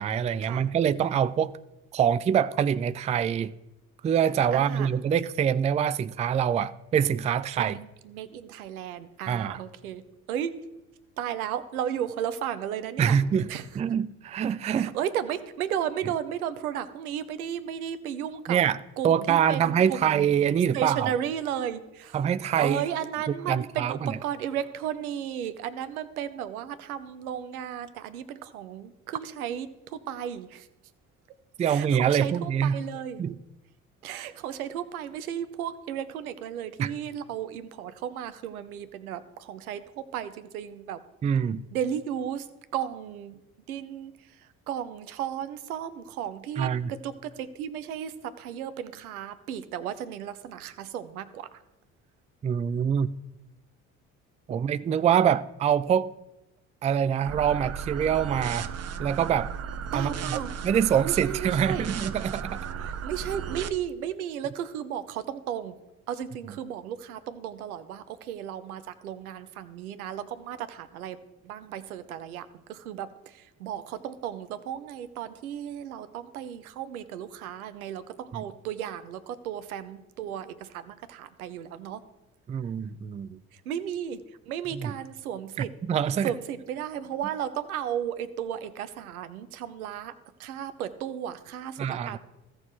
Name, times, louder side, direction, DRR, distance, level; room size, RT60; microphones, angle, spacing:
voice 1, 0.0-1.6 1.9-3.5 4.0-7.8 9.3-9.6 13.0-15.0 18.5-18.8 19.0-21.1 22.1-22.9 23.5-24.2 31.6-32.8 33.2-33.4 36.8-36.9 41.2-41.6 46.6-46.9 52.4-53.1 54.5-56.1 56.8-58.7 59.0-59.5 59.9-62.6 78.3-78.5 82.5-83.4 84.7-84.9 85.6-86.3 91.8-92.2, right 8 dB, 20° right, 0.3 m, -25 dB
voice 2, 4.5-4.9 7.6-10.5 11.2-13.2 13.5-13.6 14.7-18.6 19.0-20.3 20.7-22.2 22.6-30.7 31.7-33.2 34.0-41.0 41.7-43.4 43.7-44.1 44.4-46.7 47.0-51.5 59.9-60.5 61.0-61.8 62.8-65.8 66.1-71.2 71.4-82.0 83.5-85.7 86.2-90.1 90.4-92.2, right 9 dB, 80° right, 0.8 m, -34 dB
sound 1, 57.3-63.7, right 7 dB, 35° right, 0.8 m, -35 dB
16.0 x 6.5 x 3.1 m
figure-of-eight pair, 50°, 43 cm